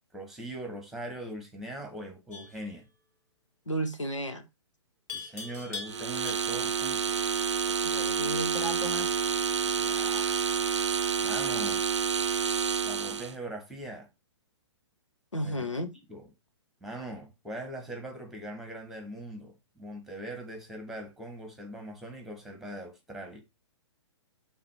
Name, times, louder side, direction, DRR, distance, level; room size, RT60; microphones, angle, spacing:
voice 1, 0.1-2.9 5.1-7.2 9.8-10.4 11.2-11.8 12.8-14.1 15.4-15.6 16.1-16.2 16.8-23.4, right 1 dB, ahead, 1.6 m, -41 dB
Livestock farm animals working animals, 2.3-2.6 5.1-6.7, left 4 dB, 15° left, 1.8 m, -41 dB
voice 2, 3.7-4.5 7.7-9.3 15.3-15.9, right 1 dB, 80° left, 1.2 m, -34 dB
sound 1, 5.9-13.4, right 7 dB, 70° right, 0.6 m, -29 dB
6.8 x 4.0 x 4.6 m
figure-of-eight pair, 120°, 16 cm